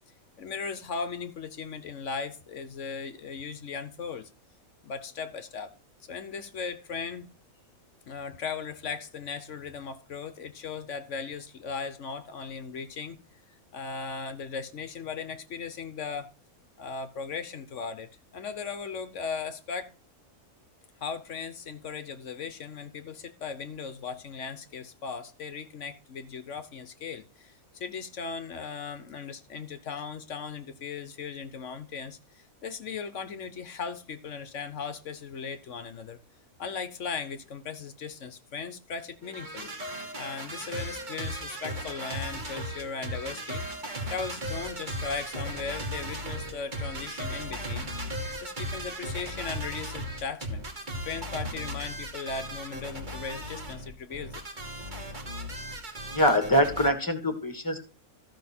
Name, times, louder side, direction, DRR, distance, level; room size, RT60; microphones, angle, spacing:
voice 1, 0.4-4.3 4.8-5.7 6.1-7.3 8.1-13.4 13.7-16.3 16.8-19.9 21.0-36.2 36.6-39.7 40.2-43.6 44.1-47.9 48.4-50.7 51.0-54.4, left 5 dB, 60° left, 1.1 m, -37 dB
sound 1, 39.2-56.9, equal, 35° right, 1.7 m, -37 dB
voice 2, 56.1-57.8, equal, 15° left, 1.5 m, -24 dB
14.0 x 5.7 x 4.3 m
omnidirectional pair, 1.5 m